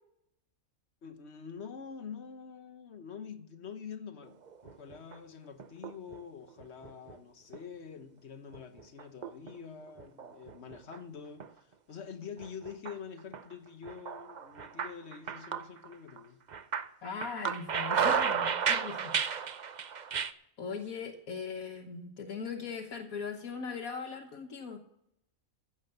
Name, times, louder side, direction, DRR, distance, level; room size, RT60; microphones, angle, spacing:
voice 1, 1.0-16.4, left 6 dB, 55° left, 1.4 m, -46 dB
sound 1, 4.5-5.2 5.6-6.2 6.6-7.2 7.5-7.6 8.5-9.6 10.0-11.0 11.4-11.5 12.4-12.9 13.3-13.5 13.9-16.2 16.5-20.3, right 6 dB, 45° right, 0.6 m, -33 dB
voice 2, 17.0-19.2 20.6-24.8, left 5 dB, 80° left, 1.5 m, -39 dB
15.5 x 7.3 x 6.7 m
omnidirectional pair, 1.5 m